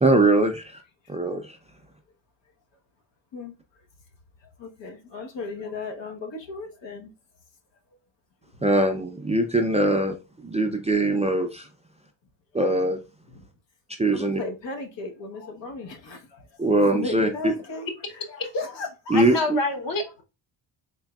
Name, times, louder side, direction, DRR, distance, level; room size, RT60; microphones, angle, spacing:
voice 1, 0.0-0.8 1.1-1.6 8.6-10.2 10.4-11.7 12.5-13.0 14.0-14.4 16.6-17.5 19.1-19.6, right 2 dB, 15° right, 0.4 m, -22 dB
voice 2, 4.6-7.1 13.3-13.4 14.1-16.6 16.8-19.4, left 3 dB, 75° left, 1.1 m, -36 dB
voice 3, 19.1-20.2, left 2 dB, 50° left, 1.0 m, -27 dB
3.9 x 3.6 x 2.3 m
wide cardioid pair, 155°, 45 cm